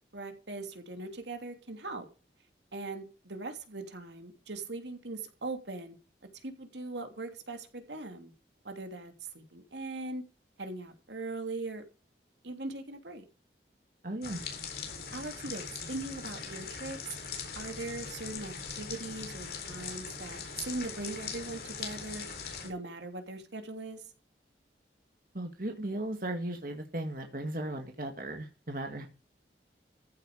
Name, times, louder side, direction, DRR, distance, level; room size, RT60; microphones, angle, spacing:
voice 1, 0.1-2.1 2.7-6.0 6.4-8.3 8.6-10.2 10.6-11.8 12.4-13.2 15.1-17.1 17.5-22.3 22.6-24.0, right 2 dB, 85° right, 3.0 m, -40 dB
voice 2, 14.0-14.4 25.3-29.1, right 1 dB, 50° right, 1.9 m, -36 dB
sound 1, 14.2-22.7, left 5 dB, 60° left, 4.0 m, -41 dB
14.5 x 8.9 x 5.0 m
head